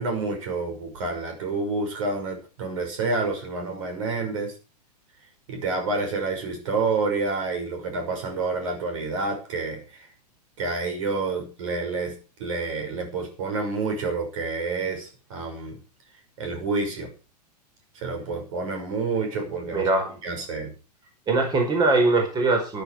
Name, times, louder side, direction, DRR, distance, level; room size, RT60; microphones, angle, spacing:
voice 1, 0.0-4.5 5.5-10.1 10.6-15.8 16.4-17.1 17.9-19.9 20.2-20.7, right 3 dB, 50° right, 4 dB, 5.9 m, -28 dB
voice 2, 19.7-20.1 21.3-22.8, right 3 dB, 20° right, 3 dB, 4.9 m, -21 dB
14.0 x 11.5 x 4.9 m, 0.34 s
figure-of-eight pair, 100°, 21 cm